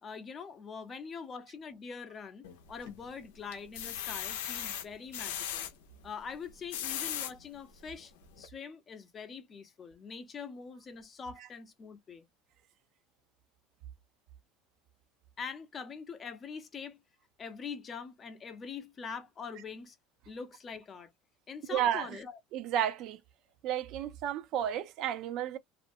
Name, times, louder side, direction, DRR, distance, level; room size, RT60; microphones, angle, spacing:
voice 1, 0.0-5.7 6.0-12.3 15.4-17.0 17.4-20.0 20.3-21.1 21.5-22.4, left 6 dB, 30° left, 0.6 m, -44 dB
sound 1, 2.4-3.0 3.5-5.7 6.5-7.3 7.9-8.0 8.4-8.5, left 10 dB, 90° left, 0.6 m, -37 dB
voice 2, 21.7-22.1 22.5-23.2 23.6-25.6, right 10 dB, 55° right, 0.5 m, -32 dB
2.4 x 2.1 x 2.5 m
supercardioid pair, 125°, 0 cm